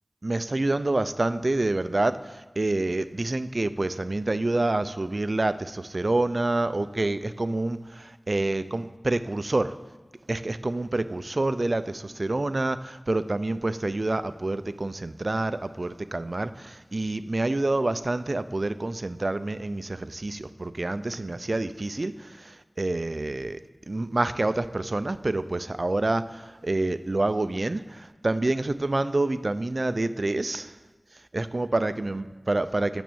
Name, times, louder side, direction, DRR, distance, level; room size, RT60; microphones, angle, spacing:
voice 1, 0.2-9.7 10.3-23.6 23.9-30.7 31.3-33.0, right 2 dB, 55° right, 13 dB, 0.5 m, -27 dB
9.0 x 7.2 x 6.9 m, 1.4 s
wide cardioid pair, 45°, 0 cm